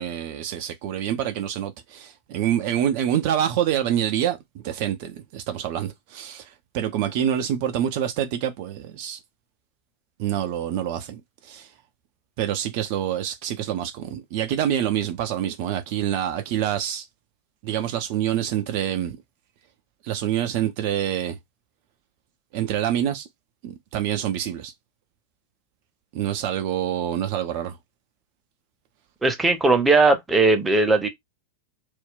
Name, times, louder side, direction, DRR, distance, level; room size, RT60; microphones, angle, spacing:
voice 1, 0.0-9.2 10.2-11.7 12.4-17.1 17.6-19.2 20.0-21.4 22.5-23.3 23.6-24.7 26.1-27.8, right 10 dB, 45° right, 0.5 m, -26 dB
voice 2, 29.2-31.1, right 3 dB, 10° right, 0.7 m, -18 dB
2.5 x 2.1 x 3.7 m
figure-of-eight pair, 90°, 0 cm